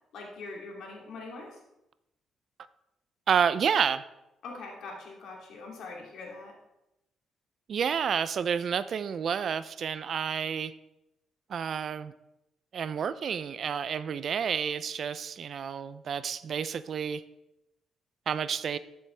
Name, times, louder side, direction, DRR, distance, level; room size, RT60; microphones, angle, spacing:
voice 1, 0.1-1.6 4.4-6.5, left 3 dB, 75° left, -1 dB, 2.8 m, -42 dB
voice 2, 3.3-4.0 7.7-10.7 11.5-12.1 12.7-17.2 18.3-18.8, right 7 dB, 55° right, 15 dB, 0.4 m, -29 dB
13.0 x 7.7 x 3.4 m, 0.91 s
cardioid pair, 90°, 0 cm